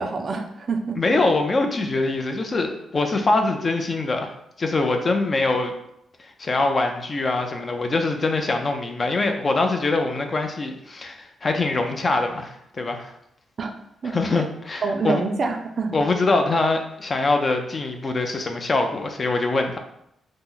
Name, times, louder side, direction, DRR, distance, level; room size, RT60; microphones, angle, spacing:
voice 1, 0.0-1.0 13.6-13.7 14.0-14.5 14.8-16.0, right 4 dB, 50° right, 5 dB, 0.4 m, -26 dB
voice 2, 1.0-4.3 4.6-5.7 6.2-13.1 14.0-15.2 15.9-19.8, left 3 dB, 35° left, 5 dB, 0.4 m, -23 dB
2.8 x 2.0 x 3.7 m, 0.75 s
cardioid pair, 85°, 0 cm